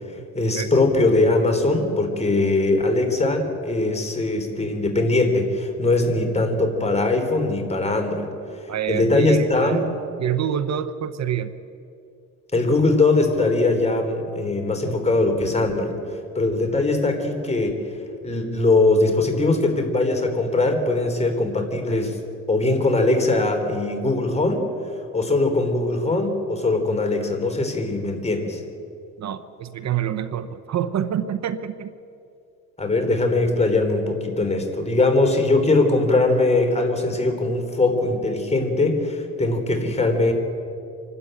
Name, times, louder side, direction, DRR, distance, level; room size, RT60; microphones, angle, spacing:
voice 1, 0.0-8.3 8.6-9.8 12.5-17.9 18.2-22.2 22.5-24.7 25.1-28.6 32.8-40.3, left 2 dB, 20° left, 4 dB, 3.6 m, -21 dB
voice 2, 8.7-9.9 10.2-11.5 29.2-31.9, right 9 dB, 60° right, 12 dB, 1.0 m, -26 dB
26.5 x 12.5 x 9.0 m, 2.6 s
cardioid pair, 90°, 30 cm